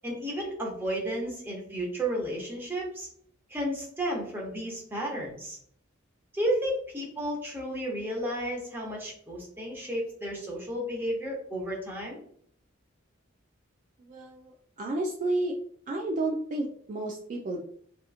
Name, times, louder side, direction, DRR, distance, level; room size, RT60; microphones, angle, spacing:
voice 1, 0.0-3.1 3.5-5.6 6.3-12.2, right 1 dB, 10° right, -3 dB, 0.8 m, -32 dB
voice 2, 14.0-15.6 15.9-17.6, right 2 dB, 40° right, 1 dB, 0.3 m, -31 dB
2.8 x 2.4 x 2.4 m, 0.62 s
head